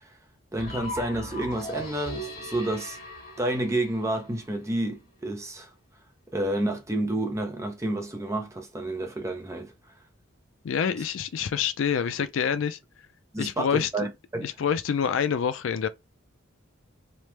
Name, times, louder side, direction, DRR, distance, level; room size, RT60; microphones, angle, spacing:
voice 1, 0.5-3.0 3.4-5.7 6.3-9.7 13.3-14.5, right 1 dB, 15° right, 0.5 m, -30 dB
sound 1, 0.6-4.5, equal, 45° left, 1.4 m, -38 dB
voice 2, 10.6-12.8 13.4-14.1 14.4-15.9, left 7 dB, 70° left, 0.4 m, -27 dB
3.1 x 2.1 x 3.0 m
head